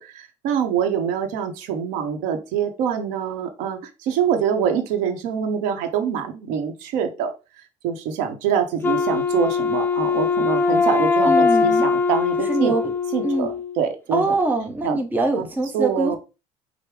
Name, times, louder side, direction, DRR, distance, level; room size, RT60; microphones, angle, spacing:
voice 1, 0.0-7.3 7.8-12.7 13.1-14.4 14.8-15.0 15.4-15.5 15.7-16.2, right 8 dB, 85° right, 0.9 m, -25 dB
Wind instrument woodwind instrument, 8.8-13.8, left 5 dB, 15° left, 0.5 m, -21 dB
voice 2, 11.2-11.8 12.5-12.9 13.2-13.5 14.1-16.2, right 2 dB, 15° right, 0.8 m, -23 dB
5.0 x 2.1 x 4.8 m
cardioid pair, 125°, 13 cm